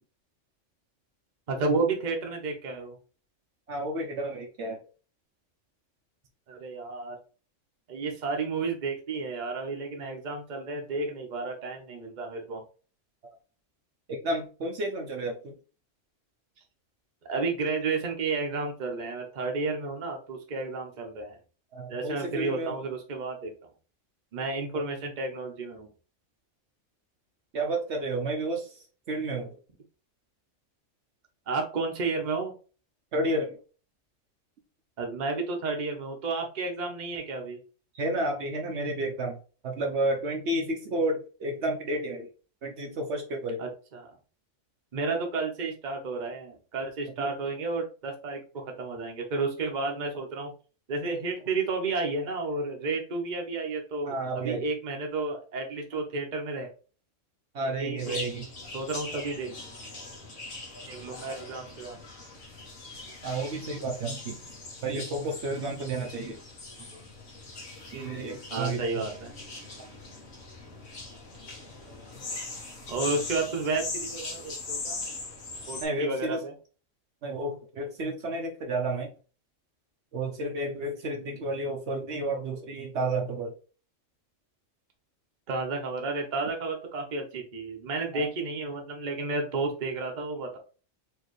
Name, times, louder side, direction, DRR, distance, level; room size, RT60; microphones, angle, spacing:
voice 1, 1.5-3.0 6.5-7.2 7.9-12.6 17.2-21.4 21.9-23.5 24.3-25.9 31.5-32.5 35.0-37.6 43.6-44.1 44.9-50.5 50.9-56.7 57.6-58.2 58.7-59.5 60.9-62.0 66.9-67.0 68.5-69.3 72.9-75.0 75.7-76.5 85.5-90.6, right 3 dB, 40° right, 2 dB, 0.9 m, -32 dB
voice 2, 3.7-4.8 14.1-15.5 21.7-22.8 24.7-24.8 27.5-29.6 33.1-33.6 37.9-39.4 39.6-42.3 42.6-43.6 47.2-47.3 54.0-54.6 57.5-58.5 63.2-64.4 64.8-66.4 67.9-69.0 75.8-76.4 77.2-79.1 80.1-83.5 88.1-88.3, right 2 dB, 65° right, 2 dB, 1.0 m, -31 dB
sound 1, 58.0-75.8, left 3 dB, 80° left, 1.6 m, -40 dB
4.6 x 2.9 x 3.1 m, 0.37 s
omnidirectional pair, 1.3 m